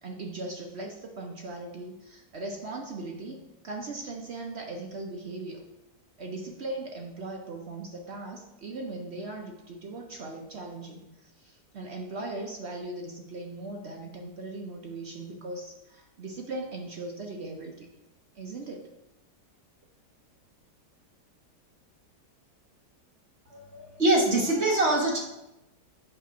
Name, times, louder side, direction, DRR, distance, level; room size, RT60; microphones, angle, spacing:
voice 1, 0.0-3.4 3.6-5.6 6.2-17.9 18.3-18.9, right 2 dB, 60° right, 1 dB, 0.7 m, -39 dB
voice 2, 23.5-25.2, right 2 dB, 45° right, -2 dB, 1.4 m, -24 dB
8.0 x 2.9 x 5.8 m, 0.93 s
omnidirectional pair, 1.8 m